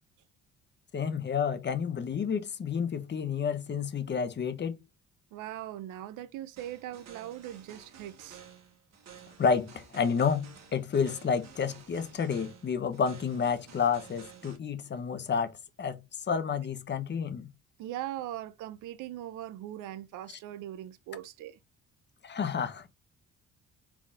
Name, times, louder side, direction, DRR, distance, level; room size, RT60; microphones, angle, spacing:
voice 1, 0.9-4.7 9.4-16.0 16.3-17.5 22.2-22.9, left 6 dB, 35° left, 0.7 m, -30 dB
voice 2, 5.3-8.4 17.8-21.6, right 13 dB, 85° right, 0.5 m, -40 dB
sound 1, 6.6-14.6, right 7 dB, 60° right, 1.4 m, -52 dB
3.9 x 3.5 x 2.4 m
cardioid pair, 90°, 30 cm